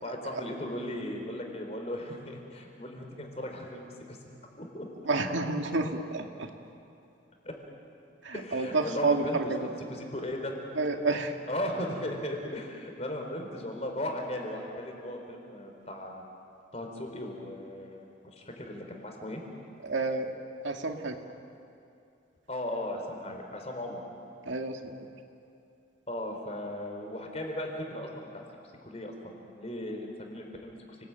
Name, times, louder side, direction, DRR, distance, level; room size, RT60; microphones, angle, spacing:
voice 1, 0.0-4.2 4.6-4.9 7.4-7.5 8.3-9.5 9.9-10.5 11.5-16.3 16.7-18.0 18.4-19.4 22.5-24.0 26.1-28.4 28.8-31.0, left 1 dB, 35° left, 2 dB, 4.4 m, -37 dB
voice 2, 5.1-6.5 8.2-9.7 10.8-11.4 19.8-20.3 20.6-21.2 24.5-25.1, right 3 dB, 90° right, 3 dB, 2.1 m, -30 dB
30.0 x 20.5 x 9.2 m, 2.6 s
head